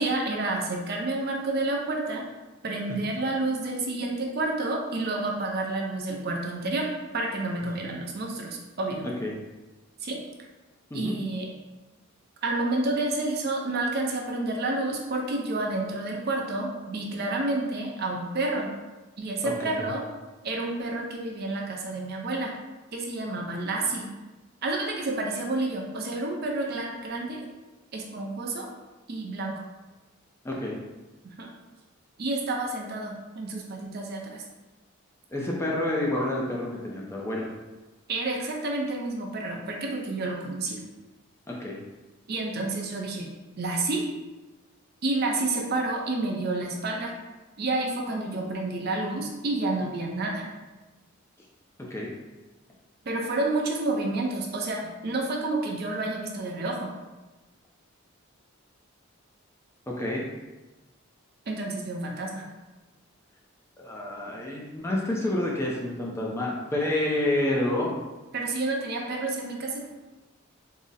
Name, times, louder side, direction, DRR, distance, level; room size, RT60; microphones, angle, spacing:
voice 1, 0.0-2.3 2.6-6.9 7.1-9.1 10.0-10.2 10.9-11.5 12.4-18.7 19.2-20.0 20.4-22.5 22.9-24.1 24.6-27.5 27.9-28.7 29.1-29.5 31.2-31.5 32.2-34.4 38.1-40.8 42.3-43.3 43.6-44.0 45.0-47.2 47.6-50.5 53.0-56.9 61.5-62.4 68.3-69.9, right 2 dB, 45° right, 0 dB, 0.5 m, -29 dB
voice 2, 30.4-30.8 35.3-37.5 41.5-41.8 51.8-52.1 59.9-60.2 63.8-68.0, left 1 dB, 10° left, -3 dB, 0.4 m, -28 dB
3.7 x 2.0 x 4.0 m, 1.1 s
head